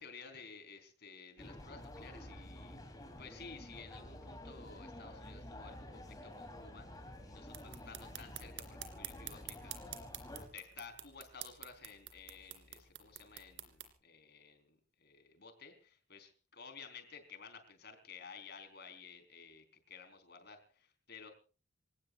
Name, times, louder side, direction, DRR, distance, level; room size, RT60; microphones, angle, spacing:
voice 1, 0.0-2.8 3.2-6.9 7.2-10.0 10.5-21.3, left 5 dB, 60° left, 8 dB, 4.0 m, -54 dB
sound 1, 1.4-10.5, left 1 dB, 20° left, 3.4 m, -50 dB
sound 2, 7.5-13.9, right 11 dB, 65° right, 2.9 m, -49 dB
28.0 x 17.5 x 2.4 m, 0.37 s
head